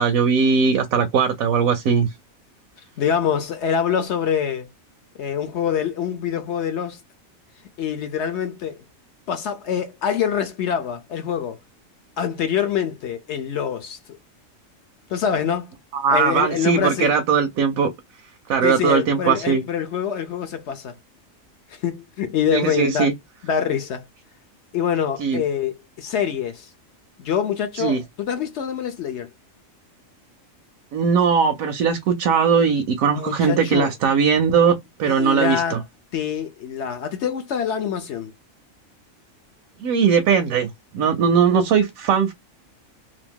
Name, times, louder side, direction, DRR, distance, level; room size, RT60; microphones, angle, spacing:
voice 1, 0.0-2.1 15.9-17.9 18.5-19.6 22.5-23.1 25.2-25.4 27.8-28.0 30.9-35.8 39.8-42.3, right 6 dB, 85° right, 1.0 m, -19 dB
voice 2, 3.0-4.7 5.2-7.0 7.8-8.8 9.3-11.6 12.2-14.0 15.1-15.7 16.1-17.1 18.6-21.0 21.7-23.1 23.4-24.0 24.7-26.7 27.2-29.3 33.1-33.9 35.0-35.8 36.1-38.3, left 8 dB, 65° left, 0.8 m, -25 dB
2.7 x 2.5 x 3.5 m
omnidirectional pair, 1.4 m